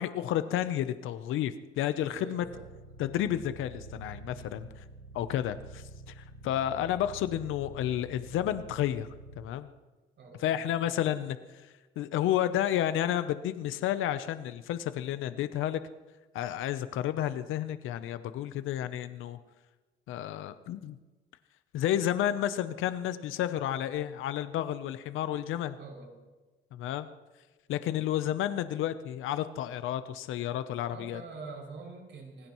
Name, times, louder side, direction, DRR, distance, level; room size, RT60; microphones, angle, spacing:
voice 1, 0.0-2.5 3.0-4.7 5.1-9.1 9.4-9.7 10.4-15.8 16.3-19.4 20.1-21.0 21.7-25.8 26.7-27.1 27.7-31.2, left 11 dB, 90° left, 11 dB, 0.7 m, -31 dB
voice 2, 2.0-2.7 4.3-4.6 10.2-10.6 25.8-26.2 30.9-32.5, right 4 dB, 65° right, 0 dB, 6.5 m, -45 dB
sound 1, 2.4-9.4, right 2 dB, 75° left, 6.7 m, -48 dB
26.0 x 17.5 x 3.1 m, 1.2 s
cardioid pair, 90°, 20 cm